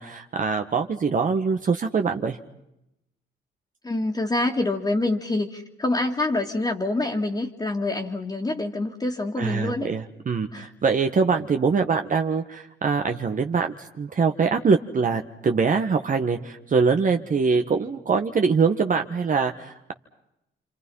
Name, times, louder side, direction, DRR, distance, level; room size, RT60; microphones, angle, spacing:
voice 1, 0.0-2.4 9.4-19.9, right 5 dB, 40° right, 5 dB, 1.6 m, -23 dB
voice 2, 3.8-9.9 10.5-10.7, left 2 dB, 20° left, -2 dB, 2.5 m, -26 dB
29.0 x 26.5 x 5.7 m, 0.84 s
cardioid pair, 90°, 20 cm